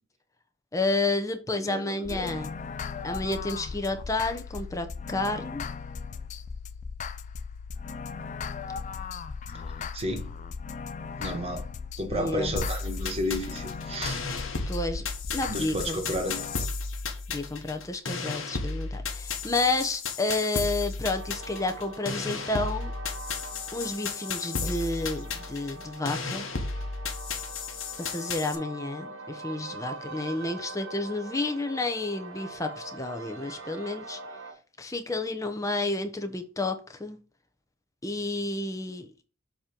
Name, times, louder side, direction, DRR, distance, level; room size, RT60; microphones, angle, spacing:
voice 1, 0.7-2.5 3.0-5.6 12.1-12.5 14.7-15.1 15.3-16.0 17.3-22.9 23.7-26.5 28.0-34.2 34.8-37.2 38.0-39.2, left 2 dB, 15° left, 0.7 m, -30 dB
voice 2, 1.6-2.4 9.9-10.3 11.2-11.6 12.0-14.2 15.5-16.5 18.2-18.3 24.6-24.7, equal, 30° right, 1.2 m, -32 dB
sound 1, 2.0-16.7, left 5 dB, 35° left, 0.3 m, -38 dB
sound 2, 12.6-28.6, left 4 dB, 75° left, 1.1 m, -34 dB
sound 3, 21.0-34.5, right 2 dB, 80° right, 1.3 m, -43 dB
7.1 x 3.0 x 5.1 m
head